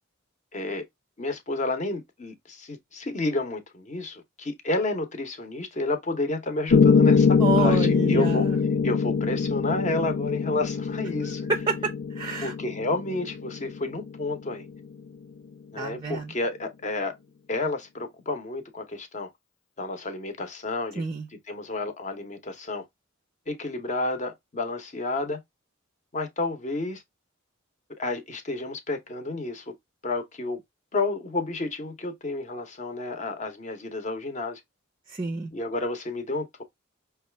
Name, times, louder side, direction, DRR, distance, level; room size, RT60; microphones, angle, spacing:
voice 1, 0.5-0.8 1.2-8.5 8.8-11.5 12.4-14.7 15.7-17.1 17.5-19.3 19.8-21.0 21.5-22.8 23.5-25.4 26.1-27.0 28.0-29.7 30.0-30.6 30.9-34.6 35.5-36.6, left 2 dB, 35° left, 0.8 m, -30 dB
Piano, 6.7-14.8, left 5 dB, 85° left, 0.5 m, -23 dB
voice 2, 7.4-8.6 11.2-12.5 15.8-16.3 21.0-21.3 35.1-35.5, right 4 dB, 20° right, 0.4 m, -29 dB
5.2 x 2.3 x 3.2 m
head